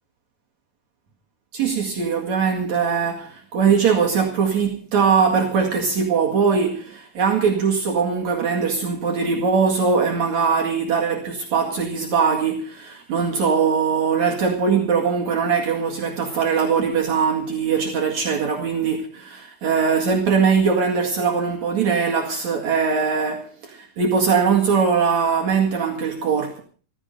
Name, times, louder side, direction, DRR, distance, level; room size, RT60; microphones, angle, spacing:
voice 1, 1.5-26.6, right 6 dB, 60° right, 3.2 m, -21 dB
16.0 x 15.0 x 5.3 m
omnidirectional pair, 3.9 m